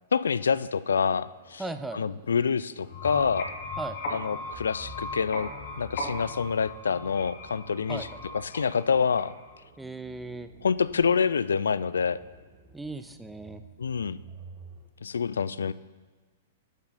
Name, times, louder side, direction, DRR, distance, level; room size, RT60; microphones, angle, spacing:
voice 1, 0.1-1.6 1.9-3.5 4.1-5.5 5.8-8.1 8.3-9.3 10.6-12.2 13.8-14.2 15.0-15.7, left 6 dB, 80° left, 17 dB, 0.3 m, -27 dB
sound 1, 0.9-14.9, right 2 dB, 35° right, 1.6 m, -51 dB
voice 2, 1.6-2.0 3.8-4.0 7.9-8.2 9.8-10.5 12.7-13.6, right 2 dB, 5° right, 9 dB, 0.6 m, -37 dB
sound 2, 2.8-9.6, left 1 dB, 55° left, 2.5 m, -38 dB
11.5 x 7.0 x 4.1 m, 1.3 s
hypercardioid pair, 110°, 0 cm